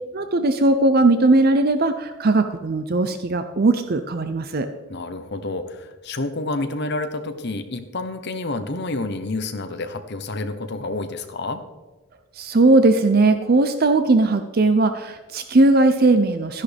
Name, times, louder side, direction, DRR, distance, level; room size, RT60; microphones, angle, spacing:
voice 1, 0.1-4.7 12.4-16.6, right 2 dB, 45° right, 9 dB, 0.5 m, -18 dB
voice 2, 4.9-11.6, left 2 dB, 50° left, 8 dB, 0.9 m, -29 dB
13.0 x 10.5 x 3.4 m, 1.2 s
head